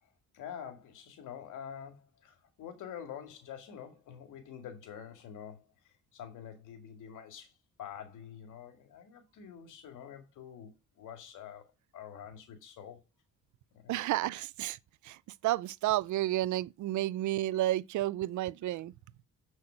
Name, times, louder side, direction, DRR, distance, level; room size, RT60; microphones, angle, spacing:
voice 1, 0.0-7.5 7.8-11.7 11.9-13.0 13.7-14.0, left 8 dB, 85° left, 2.3 m, -47 dB
voice 2, 13.9-14.8 15.0-18.9, right 15 dB, 75° right, 0.5 m, -31 dB
7.6 x 6.4 x 5.7 m
cardioid pair, 90°, 30 cm